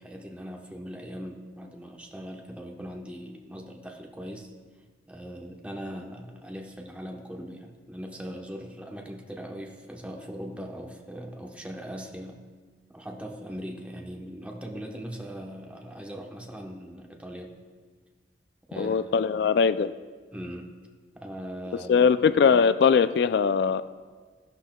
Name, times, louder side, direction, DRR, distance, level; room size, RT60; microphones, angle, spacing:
voice 1, 0.0-4.5 5.1-12.4 12.9-17.5 18.7-19.0 19.3-19.5 20.3-20.7 21.1-22.1, equal, 5° right, 0 dB, 0.9 m, -40 dB
voice 2, 18.8-19.9 21.9-23.8, left 6 dB, 65° left, 13 dB, 0.3 m, -21 dB
14.5 x 12.0 x 2.2 m, 1.5 s
head